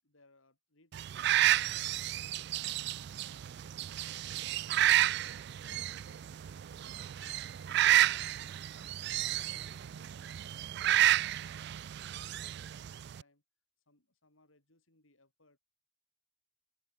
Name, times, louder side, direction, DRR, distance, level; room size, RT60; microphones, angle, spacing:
voice 1, 0.0-6.6 7.0-7.5 7.9-10.6 11.0-13.4 13.9-15.6, left 2 dB, 90° left, 7.3 m, -69 dB
sound 1, 0.9-13.2, right 13 dB, 55° right, 0.3 m, -31 dB
open air
head